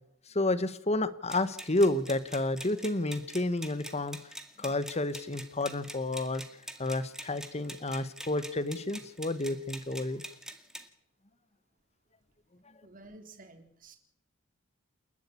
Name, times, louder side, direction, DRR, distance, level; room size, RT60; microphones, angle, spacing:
voice 1, 0.3-4.3 4.6-6.4 6.8-10.2, left 2 dB, 35° left, 14 dB, 1.4 m, -30 dB
sound 1, 1.3-10.9, right 1 dB, 5° right, 2.0 m, -45 dB
voice 2, 12.8-14.0, right 2 dB, 45° right, 6 dB, 3.8 m, -52 dB
29.0 x 11.5 x 8.5 m, 0.75 s
head